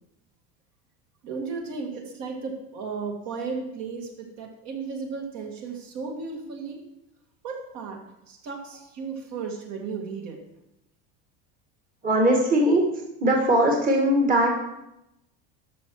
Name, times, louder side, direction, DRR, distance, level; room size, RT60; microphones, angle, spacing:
voice 1, 1.2-6.8 7.4-8.0 8.3-10.4, right 5 dB, 50° right, 1 dB, 2.1 m, -34 dB
voice 2, 12.0-12.8 13.2-14.7, right 1 dB, 25° right, 0 dB, 1.7 m, -20 dB
12.5 x 6.3 x 4.7 m, 0.87 s
cardioid pair, 150°, 33 cm